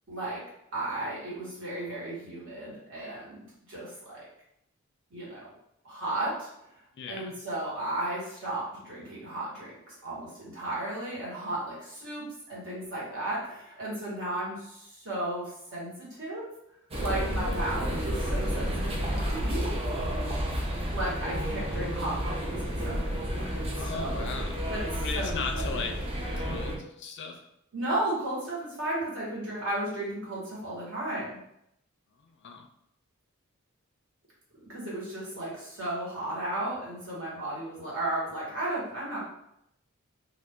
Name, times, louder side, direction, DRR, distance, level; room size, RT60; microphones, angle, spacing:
voice 1, 0.1-0.4 0.7-4.2 5.1-5.5 5.8-6.5 7.1-16.4 17.0-19.6 20.9-24.4 24.7-25.9 27.7-31.4 34.7-39.3, right 1 dB, 60° right, -6 dB, 1.4 m, -34 dB
voice 2, 7.0-7.3 17.4-17.7 23.8-24.7 25.0-26.0 26.3-27.4 32.2-32.7, left 5 dB, 55° left, 4 dB, 0.4 m, -37 dB
sound 1, 16.9-26.8, equal, 25° right, 0.5 m, -31 dB
2.5 x 2.5 x 3.5 m, 0.77 s
head